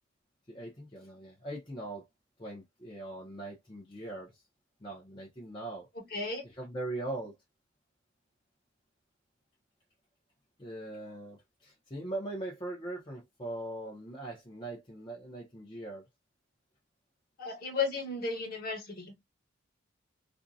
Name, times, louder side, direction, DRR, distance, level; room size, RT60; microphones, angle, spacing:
voice 1, 0.5-2.1 2.4-4.4 4.8-5.9 6.4-7.3 10.6-16.0, right 2 dB, 25° left, 0.6 m, -41 dB
voice 2, 5.9-6.4 17.4-19.2, left 4 dB, 50° left, 1.1 m, -34 dB
2.5 x 2.1 x 2.5 m
head